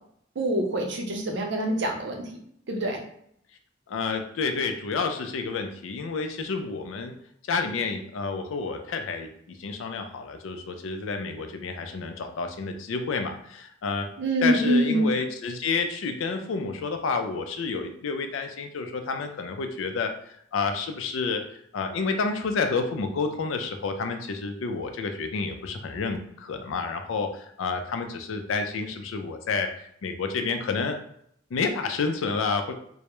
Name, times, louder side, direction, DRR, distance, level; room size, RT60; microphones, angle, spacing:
voice 1, 0.4-2.4 2.7-3.0 14.2-15.1, right 1 dB, 65° right, 2 dB, 0.5 m, -25 dB
voice 2, 3.9-7.1 7.5-14.1 14.4-20.1 20.5-21.4 21.7-29.7 30.0-31.0 31.5-32.7, left 4 dB, 85° left, 6 dB, 0.4 m, -29 dB
2.2 x 2.0 x 2.9 m, 0.68 s
head